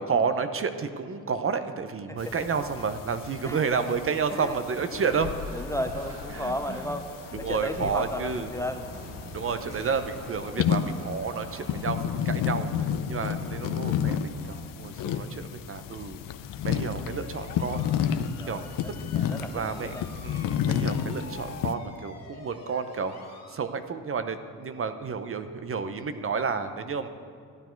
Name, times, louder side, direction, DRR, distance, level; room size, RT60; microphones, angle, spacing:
voice 1, 0.0-5.6 6.3-6.5 7.3-8.5 9.3-12.0 12.2-12.7 13.1-16.2 16.6-17.9 18.5-18.6 19.5-20.0 20.2-23.1 23.5-27.1, right 5 dB, 40° right, 10 dB, 0.8 m, -30 dB
sound 1, 2.2-21.7, left 8 dB, 70° left, 0.6 m, -32 dB
sound 2, 4.8-14.6, right 2 dB, 60° right, 3.1 m, -45 dB
voice 2, 4.9-5.2 5.5-7.1 7.4-8.9 18.4-18.7 19.1-20.1, left 1 dB, 10° left, 7 dB, 0.5 m, -34 dB
sound 3, 17.1-23.6, left 4 dB, 45° left, 2.0 m, -47 dB
13.5 x 9.3 x 4.6 m, 2.3 s
supercardioid pair, 75°, 35 cm